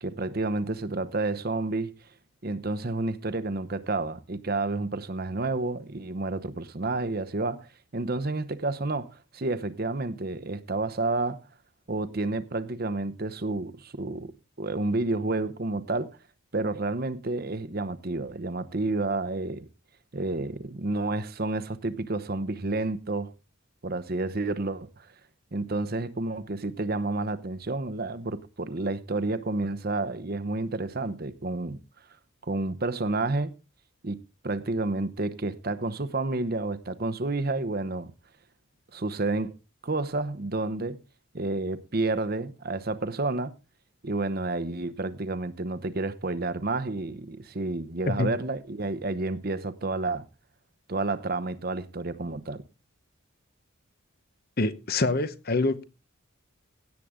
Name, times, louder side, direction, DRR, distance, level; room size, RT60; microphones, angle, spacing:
voice 1, 0.0-1.9 2.4-11.4 11.9-14.3 14.6-16.2 16.5-19.7 20.1-23.3 23.8-25.1 25.5-31.8 32.4-33.5 34.0-34.2 34.4-38.1 38.9-39.6 39.8-41.0 41.3-43.5 44.0-50.3 50.9-52.6, right 2 dB, 45° right, 0.8 m, -30 dB
voice 2, 54.6-55.8, left 2 dB, 45° left, 0.9 m, -26 dB
16.5 x 8.4 x 3.6 m
head